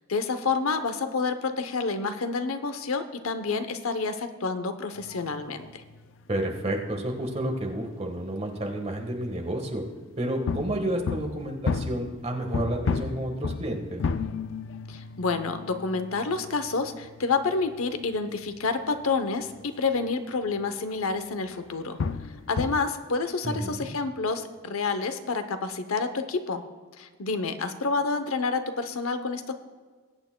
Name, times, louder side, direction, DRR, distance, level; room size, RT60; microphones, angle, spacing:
voice 1, 0.1-5.8 14.9-22.0 22.5-26.6 27.0-29.5, left 4 dB, 85° left, 9 dB, 0.8 m, -29 dB
sound 1, 4.9-8.2 8.4-9.0 9.3-9.8 10.5-20.1 20.5-20.7 21.1-21.2 21.6-22.8, left 5 dB, 60° left, 0.4 m, -34 dB
voice 2, 6.3-9.8 10.2-14.0 23.4-23.9, right 1 dB, 30° right, 2 dB, 1.3 m, -30 dB
21.5 x 8.9 x 2.2 m, 1.5 s
head